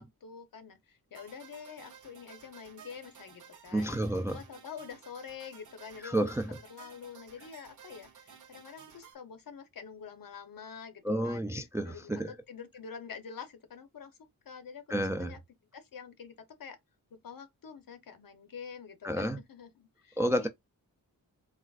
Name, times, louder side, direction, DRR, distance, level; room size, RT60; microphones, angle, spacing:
voice 1, 0.0-4.0 4.3-6.2 6.7-15.4 15.7-16.8 17.1-20.5, left 6 dB, 70° left, 0.9 m, -47 dB
sound 1, 1.1-9.1, right 7 dB, 60° right, 0.8 m, -54 dB
voice 2, 3.7-4.4 6.0-6.5 11.0-12.3 14.9-15.3 19.0-19.4 20.2-20.5, right 1 dB, 10° right, 0.3 m, -30 dB
4.1 x 2.3 x 2.4 m
wide cardioid pair, 135°, 35 cm